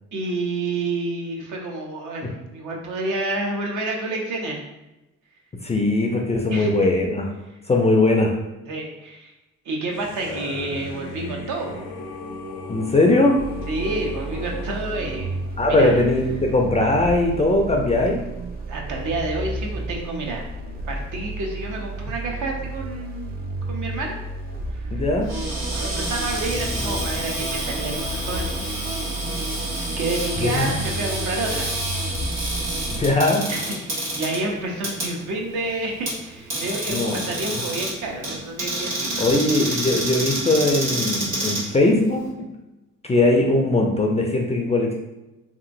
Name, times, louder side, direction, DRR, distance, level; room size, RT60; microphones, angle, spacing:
voice 1, 0.1-4.6 6.5-6.9 8.7-9.3 9.6-11.9 13.7-15.4 15.7-16.0 18.7-20.4 20.9-23.4 23.7-24.2 24.7-25.0 25.7-28.8 29.7-31.7 33.5-39.3 39.7-39.8, right 2 dB, 60° right, 0 dB, 0.7 m, -29 dB
voice 2, 5.6-7.3 7.7-8.4 10.3-10.4 12.7-13.4 15.6-18.2 24.9-25.3 30.4-30.7 32.9-33.5 36.9-37.2 39.2-42.5 43.0-44.9, left 2 dB, 20° left, 1 dB, 0.4 m, -20 dB
sound 1, 9.9-15.4, left 2 dB, 90° left, 0.6 m, -36 dB
sound 2, 13.4-33.1, right 2 dB, 25° right, 0.6 m, -32 dB
Cupboard open or close, 25.2-42.3, right 1 dB, 75° right, 1.5 m, -29 dB
2.9 x 2.5 x 2.5 m, 0.98 s
supercardioid pair, 60°, 34 cm